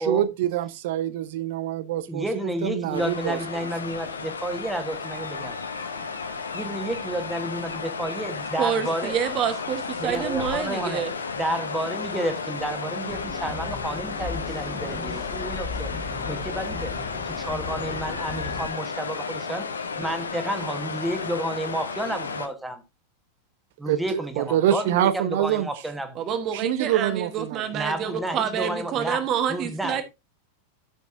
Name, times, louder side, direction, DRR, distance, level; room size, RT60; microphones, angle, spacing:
voice 1, 0.0-2.2 2.6-3.4 23.9-25.7 26.5-27.6, right 11 dB, 50° right, 0.6 m, -25 dB
voice 2, 2.1-5.6 6.5-9.2 9.5-9.6 10.0-11.0 11.3-15.9 16.2-16.9 17.2-22.8 23.8-26.2 27.7-30.0, right 1 dB, 5° right, 1.4 m, -31 dB
sound 1, 2.9-22.5, left 5 dB, 75° left, 0.9 m, -33 dB
sound 2, 5.0-20.0, left 2 dB, 85° right, 1.5 m, -49 dB
voice 3, 8.6-11.1 26.2-30.0, right 8 dB, 35° right, 1.2 m, -27 dB
sound 3, 13.1-18.7, left 3 dB, 15° left, 1.5 m, -37 dB
13.0 x 6.1 x 2.6 m
figure-of-eight pair, 90°, 0 cm